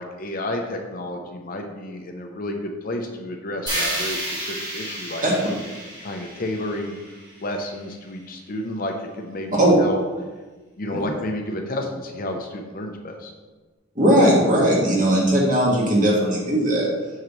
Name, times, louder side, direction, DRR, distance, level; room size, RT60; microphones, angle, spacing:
voice 1, 0.0-5.2 6.0-6.9 7.4-10.0 10.8-13.3, left 1 dB, 40° left, 3 dB, 0.7 m, -31 dB
sound 1, 3.7-7.7, right 1 dB, 20° right, 1.7 m, -31 dB
voice 2, 14.0-16.9, right 1 dB, 40° right, -3 dB, 1.8 m, -18 dB
7.5 x 5.7 x 3.1 m, 1.3 s
head